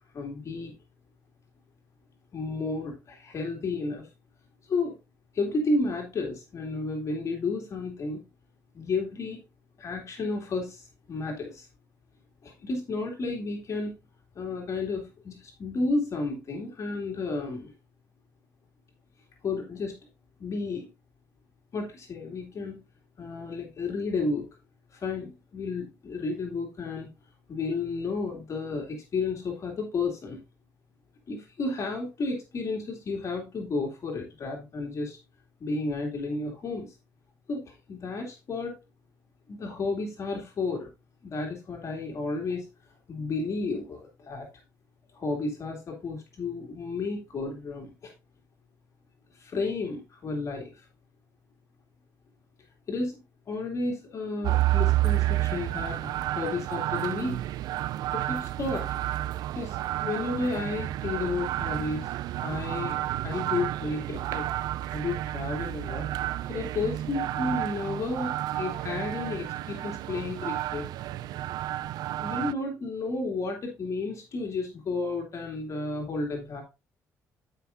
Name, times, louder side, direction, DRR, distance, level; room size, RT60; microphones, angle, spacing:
voice 1, 0.1-0.7 2.3-4.1 4.6-5.0 5.3-8.2 8.7-9.4 9.8-11.7 12.4-13.9 14.3-17.7 19.4-20.0 20.4-20.9 21.7-22.8 23.2-24.5 24.9-27.1 27.5-30.4 31.3-35.2 35.6-37.0 37.5-38.8 39.5-40.9 41.2-42.7 43.1-44.5 45.1-48.1 49.3-50.9 52.9-57.5 58.1-58.9 59.6-62.1 62.4-64.5 64.9-66.1 66.5-70.9 72.2-76.6, left 3 dB, 50° left, 0 dB, 2.6 m, -32 dB
sound 1, 54.4-72.5, right 15 dB, 75° right, 0.3 m, -30 dB
12.5 x 5.8 x 2.6 m, 0.27 s
cardioid pair, 85°, 7 cm